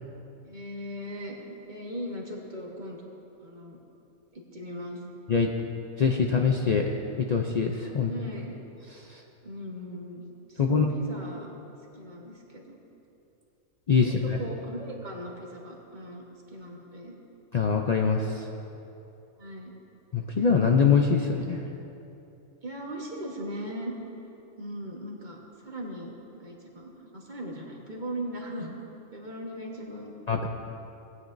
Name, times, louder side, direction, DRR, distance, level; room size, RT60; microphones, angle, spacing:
voice 1, 0.4-3.8 4.3-5.0 8.0-8.5 9.4-10.2 10.5-11.5 11.9-12.8 14.0-16.2 16.5-17.1 19.4-19.7 22.6-23.9 24.6-28.7 29.1-30.1, equal, 35° right, -2 dB, 1.4 m, -39 dB
voice 2, 6.0-6.9 7.2-8.1 9.1-9.2 10.6-10.9 13.9-14.4 17.5-18.4 20.1-21.6 30.3-30.5, left 5 dB, 80° left, 1 dB, 0.3 m, -23 dB
18.0 x 9.3 x 2.6 m, 2.9 s
omnidirectional pair, 1.5 m